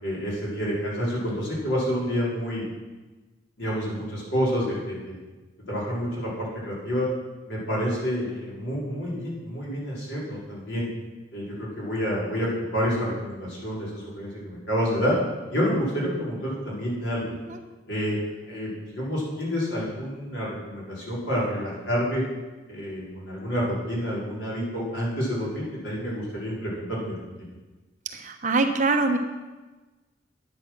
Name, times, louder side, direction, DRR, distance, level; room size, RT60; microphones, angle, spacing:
voice 1, 0.0-2.6 3.6-5.2 5.7-7.1 7.5-10.9 11.3-15.2 15.5-17.2 17.9-18.2 18.5-22.2 22.7-27.1, equal, 75° left, -5 dB, 4.8 m, -28 dB
voice 2, 28.1-29.2, right 3 dB, 40° right, 5 dB, 1.1 m, -23 dB
10.5 x 9.8 x 6.1 m, 1.2 s
head